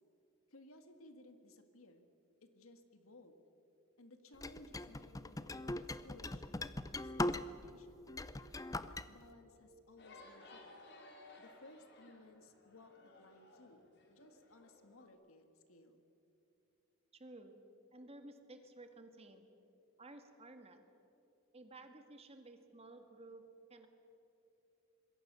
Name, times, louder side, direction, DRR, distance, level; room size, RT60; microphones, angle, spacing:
voice 1, 0.5-2.1 2.4-3.4 4.0-5.6 5.9-8.1 8.7-10.8 11.4-16.0, left 1 dB, 80° left, 7 dB, 2.1 m, -60 dB
sound 1, 4.4-7.7 8.1-9.1, left 2 dB, 15° left, 0.6 m, -40 dB
sound 2, 10.0-15.1, left 2 dB, 55° left, 3.8 m, -59 dB
voice 2, 17.1-17.6 17.9-19.4 20.0-20.8 21.5-23.9, right 2 dB, 30° right, 7 dB, 1.9 m, -55 dB
26.5 x 22.0 x 7.0 m, 2.8 s
head